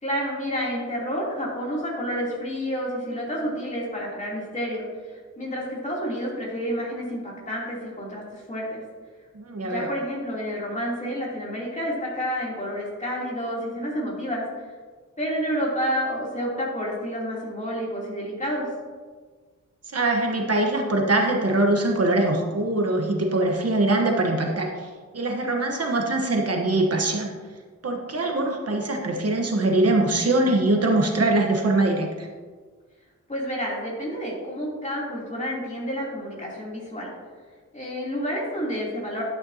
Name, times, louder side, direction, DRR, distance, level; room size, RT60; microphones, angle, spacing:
voice 1, 0.0-8.8 9.6-14.4 15.2-18.7 33.3-37.1 37.7-39.2, equal, 25° left, -5 dB, 3.1 m, -29 dB
voice 2, 9.3-9.9 19.9-27.3 27.8-32.3, right 2 dB, 55° right, 1 dB, 1.2 m, -23 dB
12.0 x 9.8 x 2.8 m, 1.5 s
wide cardioid pair, 135°, 29 cm